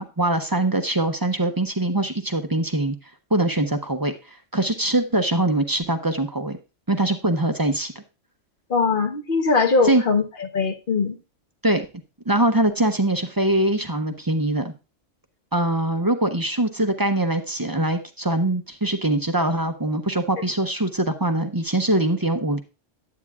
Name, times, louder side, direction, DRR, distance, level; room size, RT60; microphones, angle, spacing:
voice 1, 0.0-2.9 3.3-4.1 4.5-6.6 6.9-7.9 9.8-10.0 11.6-11.9 12.3-14.7 15.5-22.6, right 1 dB, 25° right, 0.5 m, -22 dB
voice 2, 8.7-11.2, left 4 dB, 45° left, 1.1 m, -21 dB
9.9 x 8.6 x 2.3 m
omnidirectional pair, 1.3 m